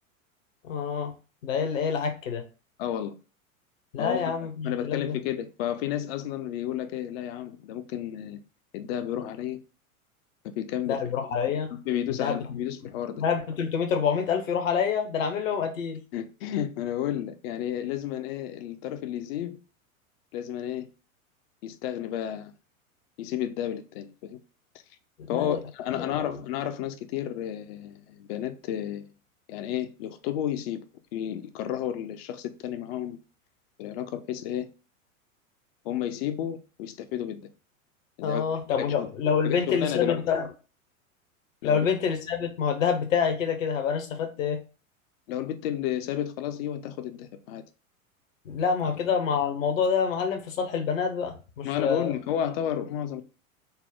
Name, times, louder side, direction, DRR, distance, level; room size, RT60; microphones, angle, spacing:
voice 1, 0.6-1.1 1.4-2.4 3.9-5.2 10.9-11.7 12.2-12.4 13.2-16.0 25.3-25.6 26.0-26.3 38.2-40.5 41.6-44.6 48.4-52.1, left 6 dB, 65° left, 1.0 m, -27 dB
voice 2, 2.8-3.1 4.0-8.4 8.7-9.6 10.6-11.0 11.7-13.2 16.1-19.6 20.3-20.9 21.6-22.5 23.2-24.4 25.3-29.1 29.5-30.8 31.1-33.2 33.8-34.7 35.8-37.5 38.2-38.4 38.8-39.1 39.4-40.3 41.6-41.9 45.3-47.6 48.8-48.9 51.6-53.2, left 10 dB, 45° left, 0.5 m, -32 dB
4.2 x 2.1 x 3.4 m
figure-of-eight pair, 90°, 42 cm